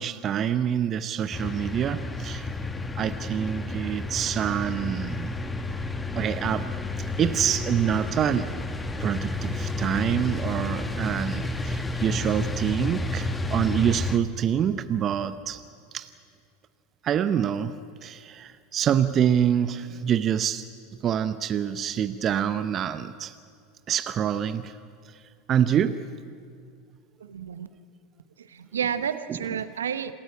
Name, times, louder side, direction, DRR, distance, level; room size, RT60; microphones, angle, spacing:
voice 1, 0.0-2.5 3.0-5.4 6.1-6.7 7.2-8.5 9.0-15.6 15.9-16.1 17.0-20.7 21.0-23.3 23.9-24.8 25.0-25.2 25.5-26.0, right 9 dB, 35° right, 12 dB, 0.7 m, -26 dB
sound 1, 1.3-14.2, left 2 dB, 15° left, 1.5 m, -31 dB
voice 2, 27.2-27.7 28.4-30.1, right 8 dB, 85° right, 12 dB, 0.9 m, -31 dB
27.0 x 14.5 x 9.8 m, 2.3 s
hypercardioid pair, 90°, 0 cm